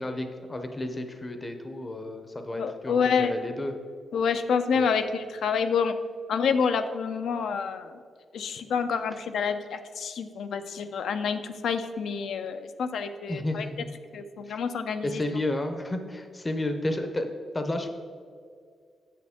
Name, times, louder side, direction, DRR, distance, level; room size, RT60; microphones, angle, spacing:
voice 1, 0.0-3.7 4.7-4.9 13.3-13.9 14.4-14.6 15.0-17.3 17.5-17.9, left 1 dB, 20° left, 6 dB, 0.6 m, -31 dB
voice 2, 2.6-3.3 4.1-6.0 6.3-8.0 8.3-13.7 14.1-15.2, left 6 dB, 75° left, 9 dB, 0.5 m, -28 dB
8.4 x 7.2 x 3.6 m, 2.2 s
wide cardioid pair, 130°, 0 cm